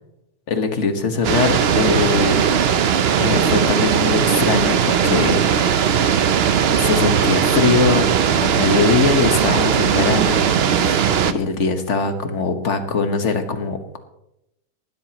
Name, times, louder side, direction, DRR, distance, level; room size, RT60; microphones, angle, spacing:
voice 1, 0.5-2.4 3.2-5.4 6.8-14.0, left 4 dB, 45° left, 7 dB, 1.5 m, -21 dB
sound 1, 1.2-11.3, right 8 dB, 75° right, 0.5 m, -18 dB
19.0 x 13.0 x 3.0 m, 0.85 s
omnidirectional pair, 1.9 m